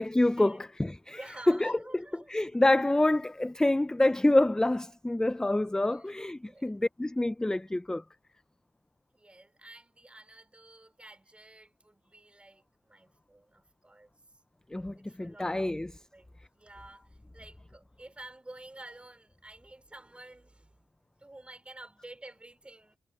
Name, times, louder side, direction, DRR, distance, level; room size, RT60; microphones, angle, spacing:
voice 1, 0.0-1.2 1.5-1.8 2.3-8.0 14.7-15.9, left 1 dB, 10° left, 0.4 m, -27 dB
voice 2, 1.1-2.4 5.6-6.1 6.4-6.7 9.1-14.1 14.9-15.8 16.1-20.7 21.2-23.0, right 2 dB, 15° right, 4.3 m, -51 dB
cardioid pair, 80°, 7 cm